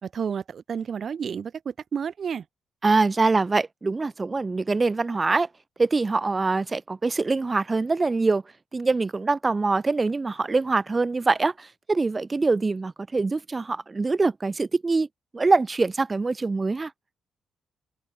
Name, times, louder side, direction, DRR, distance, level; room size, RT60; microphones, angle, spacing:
voice 1, 0.0-2.4, right 7 dB, 55° right, 3.1 m, -31 dB
voice 2, 2.8-5.5 5.8-8.4 8.7-15.1 15.3-16.9, right 3 dB, 30° right, 2.8 m, -24 dB
supercardioid pair, 50°, 0 cm